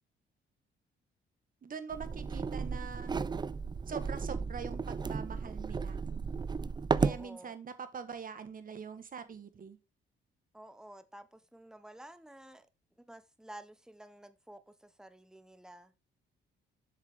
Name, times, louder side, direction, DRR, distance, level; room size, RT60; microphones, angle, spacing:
voice 1, 1.6-3.1 3.9-6.0 7.0-9.8, right 6 dB, 45° right, 1.6 m, -43 dB
sound 1, 1.9-7.2, right 5 dB, 20° right, 0.4 m, -34 dB
voice 2, 7.0-7.5 10.5-12.7 13.0-15.9, right 1 dB, 5° right, 1.1 m, -51 dB
7.7 x 6.6 x 3.7 m
cardioid pair, 90°, 20 cm